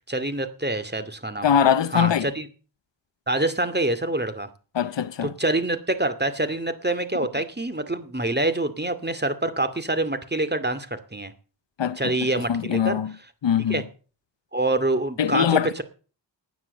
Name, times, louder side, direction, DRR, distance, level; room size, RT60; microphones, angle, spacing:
voice 1, 0.1-1.5 1.9-2.5 3.3-4.5 5.2-11.3 12.0-13.0 13.7-13.8 14.5-15.8, right 2 dB, 25° right, 2.4 m, -26 dB
voice 2, 1.4-2.3 4.7-5.3 11.8-13.1 13.4-13.8 15.2-15.8, left 8 dB, 85° left, 0.7 m, -22 dB
15.5 x 9.6 x 6.6 m
cardioid pair, 45°, 43 cm